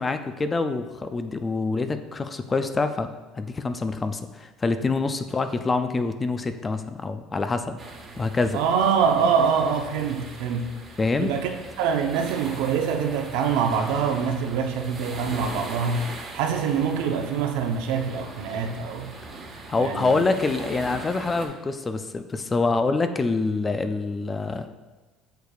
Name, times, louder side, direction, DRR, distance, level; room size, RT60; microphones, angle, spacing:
voice 1, 0.0-3.1 3.3-7.8 8.2-8.6 11.0-11.3 19.7-24.7, left 3 dB, 20° left, 9 dB, 0.3 m, -26 dB
sound 1, 7.8-21.5, right 2 dB, 30° right, 1.3 m, -40 dB
voice 2, 8.5-10.8 11.2-11.5 11.8-16.1 16.3-19.1 19.8-20.2, right 6 dB, 85° right, 4 dB, 0.7 m, -24 dB
8.0 x 6.6 x 2.4 m, 1.2 s
cardioid pair, 140°, 0 cm